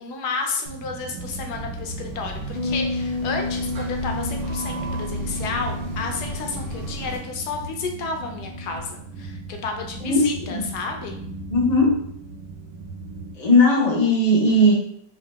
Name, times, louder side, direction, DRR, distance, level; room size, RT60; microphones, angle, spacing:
voice 1, 0.0-11.2, left 4 dB, 70° left, 3 dB, 1.1 m, -31 dB
sound 1, 0.7-13.3, right 2 dB, 90° right, 1.4 m, -35 dB
sound 2, 1.1-7.2, right 2 dB, 60° right, 1.1 m, -37 dB
sound 3, 2.5-8.8, left 3 dB, 35° right, 0.9 m, -32 dB
voice 2, 10.0-10.6 11.5-11.9 13.4-14.7, left 1 dB, 35° left, -2 dB, 0.6 m, -18 dB
3.8 x 2.6 x 3.4 m, 0.67 s
omnidirectional pair, 1.9 m